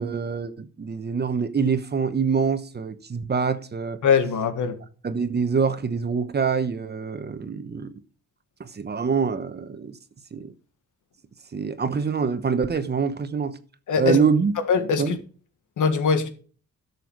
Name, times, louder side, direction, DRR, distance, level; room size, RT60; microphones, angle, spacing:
voice 1, 0.0-4.0 5.0-7.9 8.6-10.0 10.3-10.5 11.5-13.6 14.0-14.6 15.0-15.2, right 5 dB, 35° right, 1.0 m, -25 dB
voice 2, 4.0-4.7 13.9-14.2 14.7-15.2 15.8-16.3, left 5 dB, 80° left, 1.6 m, -21 dB
12.0 x 6.9 x 4.6 m
wide cardioid pair, 125°, 30 cm